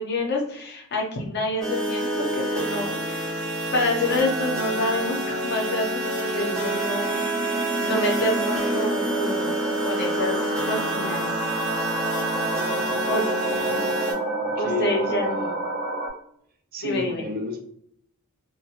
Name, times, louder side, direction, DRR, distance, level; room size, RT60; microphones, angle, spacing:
voice 1, 0.0-3.4 3.7-7.2 7.8-9.5 9.8-10.4 10.7-11.3 13.1-13.2 14.5-15.5 16.8-17.3, left 2 dB, 50° left, -1 dB, 0.7 m, -27 dB
sound 1, 1.6-14.1, right 1 dB, 5° left, 0.6 m, -28 dB
sound 2, 4.2-16.1, right 2 dB, 70° right, 0.8 m, -30 dB
voice 2, 12.8-14.0 14.4-15.6 16.7-17.6, left 2 dB, 40° right, 3 dB, 0.4 m, -33 dB
2.4 x 2.1 x 2.8 m, 0.69 s
head